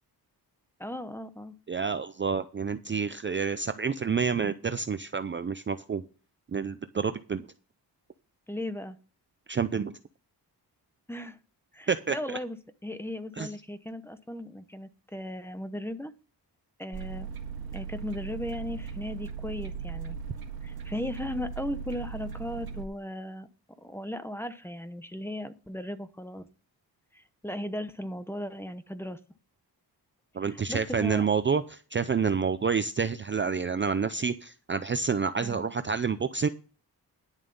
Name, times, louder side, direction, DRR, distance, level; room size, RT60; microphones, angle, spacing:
voice 1, 0.8-1.5 8.5-9.0 11.1-11.4 11.7-12.6 12.8-16.1 16.8-17.3 17.7-20.2 20.6-23.5 23.8-26.5 27.1-29.2 30.4-31.3 35.4-35.7, left 1 dB, 5° left, 11 dB, 0.8 m, -37 dB
voice 2, 1.7-6.0 6.5-7.5 9.5-9.9 11.9-12.4 13.4-13.5 30.3-36.5, right 5 dB, 30° right, 11 dB, 0.5 m, -28 dB
sound 1, 16.9-22.8, right 6 dB, 60° right, 1.8 m, -38 dB
11.0 x 7.2 x 5.3 m, 0.36 s
wide cardioid pair, 150°, 41 cm